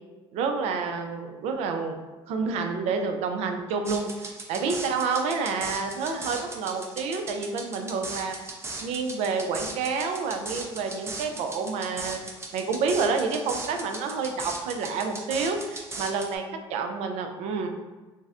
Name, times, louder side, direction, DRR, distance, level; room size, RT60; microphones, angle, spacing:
voice 1, 0.3-2.0 2.3-8.4 8.8-12.2 12.5-16.4 16.7-17.7, right 4 dB, 75° right, 5 dB, 0.4 m, -29 dB
sound 1, 3.9-16.4, right 2 dB, 25° right, 0.5 m, -38 dB
3.9 x 2.1 x 2.4 m, 1.2 s
supercardioid pair, 90°, 11 cm